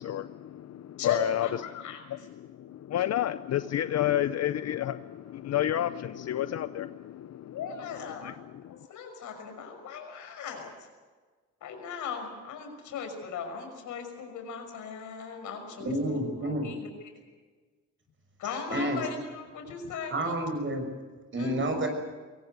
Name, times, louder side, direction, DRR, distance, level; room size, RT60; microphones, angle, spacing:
voice 1, 0.0-1.5 2.1-7.6 8.2-8.8, left 12 dB, 60° left, 13 dB, 0.7 m, -31 dB
voice 2, 1.0-2.0 7.5-8.3 8.7-10.7 11.6-16.9 18.4-20.4 21.4-21.5, left 6 dB, 80° left, 5 dB, 6.0 m, -38 dB
voice 3, 15.8-16.7 18.7-19.0 20.1-20.9 21.3-21.9, right 1 dB, 40° right, 5 dB, 6.3 m, -29 dB
23.0 x 18.5 x 8.1 m, 1.4 s
cardioid pair, 90°, 30 cm